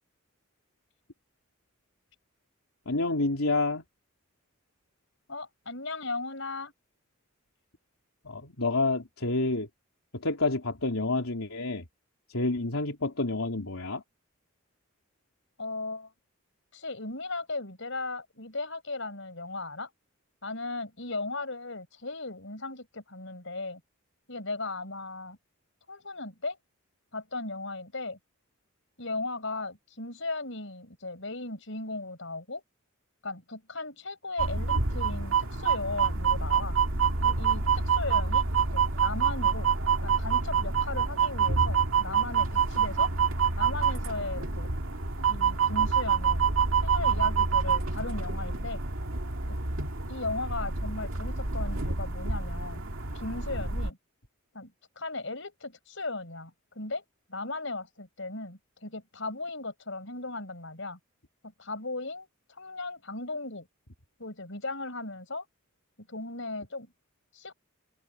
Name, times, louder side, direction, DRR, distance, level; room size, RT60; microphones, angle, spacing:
voice 1, 2.9-3.8 8.3-9.7 10.1-11.9 12.3-14.0, left 2 dB, 85° left, 3.4 m, -28 dB
voice 2, 5.3-6.7 15.6-16.1 16.7-19.9 20.4-23.8 24.3-25.4 25.9-26.6 27.1-28.2 29.0-32.6 33.2-36.8 37.2-38.4 38.7-39.7 40.0-43.1 43.6-44.7 45.3-46.4 46.8-48.8 49.5-49.6 50.1-52.8 53.1-54.0 54.5-57.0 57.3-61.0 61.4-63.7 64.2-65.5 66.0-66.9 67.3-67.5, left 3 dB, 65° left, 6.2 m, -37 dB
sound 1, 34.4-53.9, right 6 dB, 75° right, 2.2 m, -27 dB
head